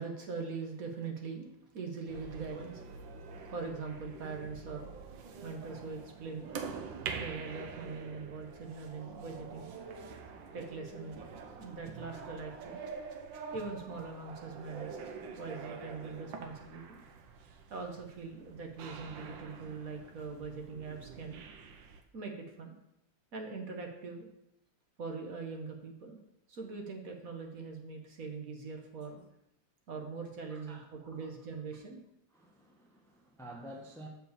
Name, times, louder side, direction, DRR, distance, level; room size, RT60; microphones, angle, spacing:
voice 1, 0.0-1.5 1.7-2.8 3.4-4.9 5.4-6.5 7.0-9.7 10.5-12.8 13.5-14.9 15.4-17.0 17.7-21.4 22.1-22.7 23.3-24.3 25.0-26.2 26.5-29.2 29.9-32.0, right 4 dB, 50° right, 2 dB, 1.3 m, -42 dB
sound 1, 2.1-22.0, right 5 dB, 80° right, 1.5 m, -46 dB
voice 2, 30.5-30.9 32.3-34.1, right 1 dB, 5° left, 0 dB, 0.5 m, -49 dB
6.9 x 4.5 x 6.8 m, 0.81 s
omnidirectional pair, 2.1 m